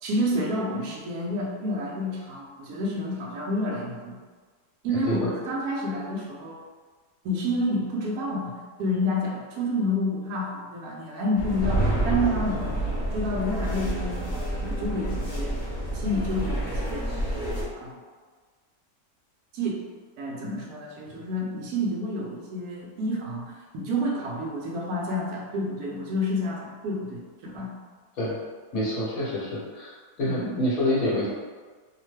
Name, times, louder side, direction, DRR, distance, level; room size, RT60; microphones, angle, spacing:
voice 1, 0.0-4.2 4.8-6.6 7.2-8.5 8.8-12.8 13.1-15.6 15.9-17.1 17.7-18.0 19.5-19.8 20.2-27.7 30.2-30.6, left 1 dB, 70° right, -2 dB, 1.0 m, -29 dB
voice 2, 4.9-5.3 28.2-28.3 28.7-29.9 30.2-31.3, left 1 dB, 60° left, -6 dB, 1.2 m, -27 dB
sound 1, 11.3-17.6, right 1 dB, 40° left, 0.7 m, -28 dB
2.9 x 2.1 x 3.0 m, 1.4 s
omnidirectional pair, 1.8 m